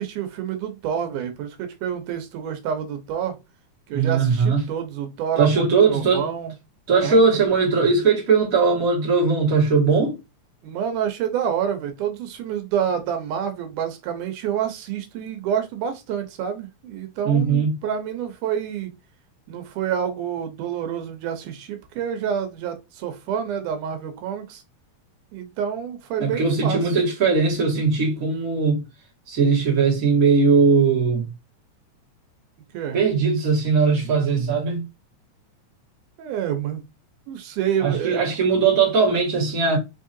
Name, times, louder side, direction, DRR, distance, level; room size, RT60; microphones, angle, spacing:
voice 1, 0.0-3.4 3.9-6.5 7.0-7.2 10.6-18.9 19.5-24.6 25.3-27.0 32.7-33.0 36.2-36.8 37.3-38.3, right 8 dB, 90° right, 2.4 m, -28 dB
voice 2, 3.9-4.6 5.4-6.3 6.9-10.2 17.2-17.8 26.2-28.8 29.3-31.3 32.9-34.9 37.8-39.8, right 5 dB, 30° right, 2.1 m, -19 dB
5.2 x 3.6 x 2.6 m
omnidirectional pair, 3.5 m